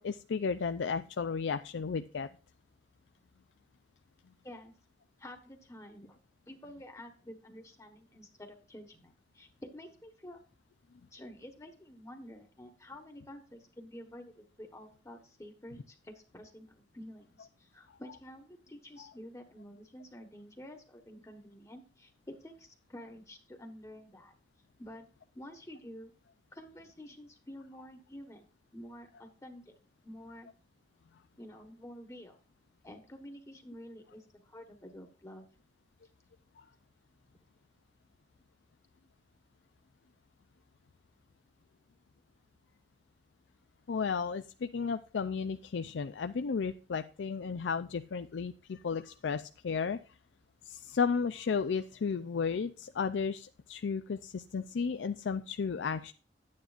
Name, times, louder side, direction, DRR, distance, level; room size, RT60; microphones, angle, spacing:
voice 1, 0.0-2.3 36.6-36.7 43.9-50.0 50.7-56.1, left 5 dB, 90° left, 10 dB, 0.4 m, -33 dB
voice 2, 5.2-6.2 6.5-10.4 11.1-24.3 24.8-25.1 25.3-26.1 26.5-28.4 28.7-29.8 30.0-30.5 31.4-32.4 32.8-35.5, equal, 15° left, 4 dB, 1.2 m, -49 dB
11.5 x 9.4 x 2.5 m, 0.36 s
head